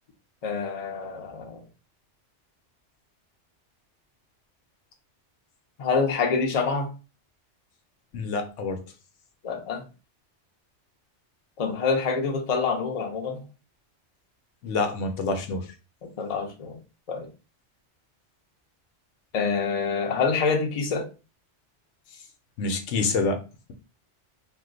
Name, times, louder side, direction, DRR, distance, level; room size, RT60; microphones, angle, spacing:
voice 1, 0.4-1.6 5.8-6.9 9.4-9.8 11.6-13.4 16.2-16.8 17.1-17.3 19.3-21.1, left 5 dB, 40° left, 0.6 m, -26 dB
voice 2, 8.1-8.8 14.6-15.7 22.6-23.4, left 3 dB, 85° left, 1.0 m, -27 dB
2.5 x 2.2 x 3.7 m
omnidirectional pair, 1.2 m